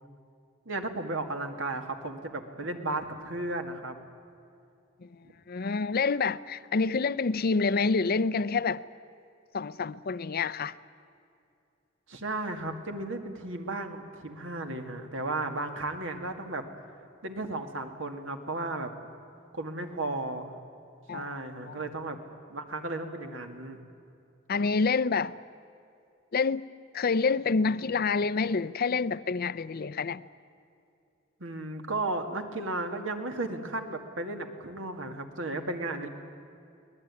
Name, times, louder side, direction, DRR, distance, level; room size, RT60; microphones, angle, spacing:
voice 1, 0.7-4.0 12.1-16.6 17.2-18.9 19.5-20.5 21.1-22.2 22.5-23.8 31.4-36.1, right 2 dB, 75° right, 2.2 m, -34 dB
voice 2, 5.0-8.8 9.5-10.8 21.1-21.9 24.5-25.3 26.3-26.6 26.9-30.2, left 4 dB, 50° left, 0.6 m, -28 dB
24.0 x 19.0 x 9.8 m
head